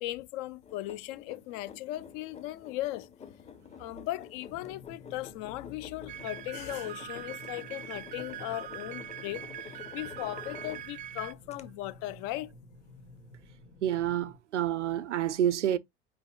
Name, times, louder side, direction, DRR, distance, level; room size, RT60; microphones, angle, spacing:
voice 1, 0.0-3.1 3.8-9.4 9.9-12.5, left 16 dB, 50° left, 0.5 m, -37 dB
sound 1, 0.6-11.1 11.5-11.6, left 7 dB, 20° left, 0.8 m, -49 dB
sound 2, 4.5-14.4, left 2 dB, 75° left, 1.3 m, -53 dB
sound 3, 6.1-11.3, right 11 dB, 25° right, 0.3 m, -43 dB
voice 2, 13.8-15.8, right 11 dB, 80° right, 0.5 m, -28 dB
5.1 x 4.3 x 2.2 m
figure-of-eight pair, 70°, 35 cm